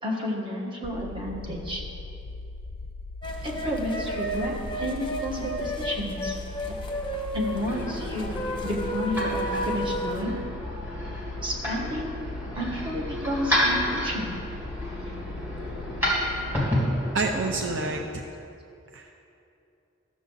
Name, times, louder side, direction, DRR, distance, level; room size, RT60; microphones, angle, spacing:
voice 1, 0.0-1.8 3.4-4.5 4.8-6.4 6.7-6.8 7.3-8.3 8.6-10.3 11.4-12.2 12.5-14.4, equal, 25° right, -1 dB, 1.3 m, -31 dB
sound 1, 0.8-16.7, left 3 dB, 50° left, 0.3 m, -39 dB
sound 2, 3.2-10.2, equal, 25° left, 0.8 m, -32 dB
sound 3, 7.4-18.0, equal, 10° right, 2.0 m, -31 dB
voice 2, 17.1-18.2 18.9-19.1, right 3 dB, 70° right, 2 dB, 0.5 m, -28 dB
12.5 x 7.2 x 3.9 m, 2.7 s
head